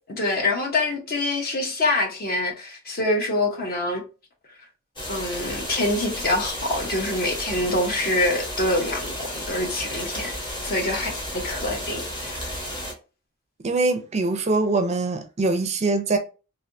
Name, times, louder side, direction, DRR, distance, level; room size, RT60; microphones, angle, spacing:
voice 1, 0.2-4.0 5.1-10.3 10.6-12.5, left 2 dB, 45° left, 0.9 m, -25 dB
sound 1, 5.0-12.9, equal, 25° left, 1.0 m, -33 dB
voice 2, 13.6-16.2, right 3 dB, 35° right, 0.4 m, -23 dB
3.2 x 2.6 x 2.6 m
head